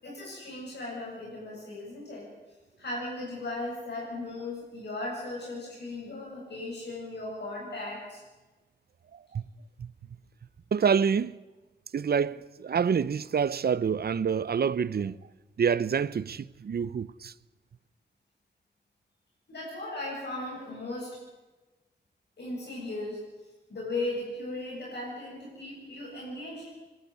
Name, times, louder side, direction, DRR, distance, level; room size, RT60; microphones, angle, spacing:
voice 1, 0.0-2.3 2.8-8.2 19.5-21.2 22.4-23.2 23.7-26.7, left 2 dB, 70° left, 7.6 m, -37 dB
voice 2, 10.7-11.4 11.9-15.2 15.6-17.3, right 6 dB, 60° right, 0.6 m, -27 dB
21.5 x 13.0 x 9.7 m
wide cardioid pair, 80°, 18 cm